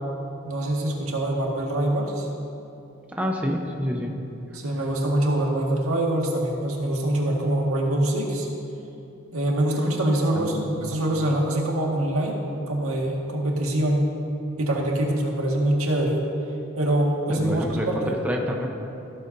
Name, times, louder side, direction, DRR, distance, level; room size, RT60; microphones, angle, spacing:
voice 1, 0.4-2.3 4.5-8.5 9.3-12.4 12.7-14.1 14.6-16.2 16.8-18.1, right 1 dB, 85° right, -1 dB, 1.9 m, -24 dB
voice 2, 3.1-4.2 10.3-10.8 17.3-18.7, equal, 5° right, 0 dB, 0.8 m, -28 dB
15.5 x 13.5 x 2.7 m, 2.7 s
head